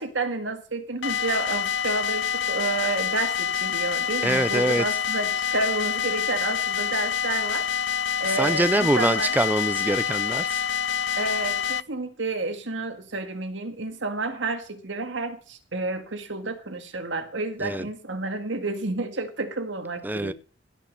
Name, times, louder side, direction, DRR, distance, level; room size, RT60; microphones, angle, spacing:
voice 1, 0.0-7.7 8.2-9.3 11.2-20.3, right 3 dB, 90° right, 1.9 m, -30 dB
sound 1, 1.0-11.8, left 7 dB, 75° left, 0.5 m, -27 dB
voice 2, 4.2-4.8 8.3-10.6 17.6-17.9 20.0-20.3, right 1 dB, 10° right, 0.5 m, -24 dB
16.5 x 5.8 x 6.6 m
head